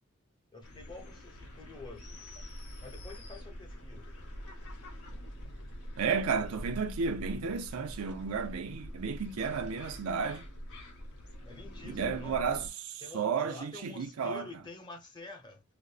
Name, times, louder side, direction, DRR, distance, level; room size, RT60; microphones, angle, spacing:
voice 1, 0.5-2.1 2.8-4.1 11.4-12.4 13.0-15.6, left 3 dB, 20° left, 0.8 m, -48 dB
sound 1, 0.6-12.7, equal, 80° left, 1.2 m, -45 dB
voice 2, 6.0-10.4 11.8-14.5, right 5 dB, 80° right, 0.5 m, -33 dB
5.0 x 2.1 x 2.4 m
head